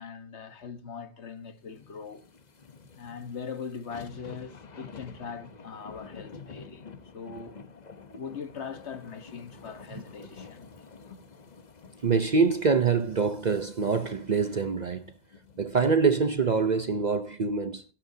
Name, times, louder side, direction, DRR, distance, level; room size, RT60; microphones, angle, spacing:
voice 1, 0.0-2.3 2.9-6.8 7.1-7.6 8.1-10.7, left 6 dB, 85° left, 1.6 m, -41 dB
sound 1, 1.6-16.1 16.5-16.6, left 5 dB, 40° left, 1.1 m, -49 dB
voice 2, 12.0-15.0 15.6-17.8, right 5 dB, 45° right, 0.8 m, -25 dB
18.5 x 13.5 x 2.8 m
omnidirectional pair, 1.1 m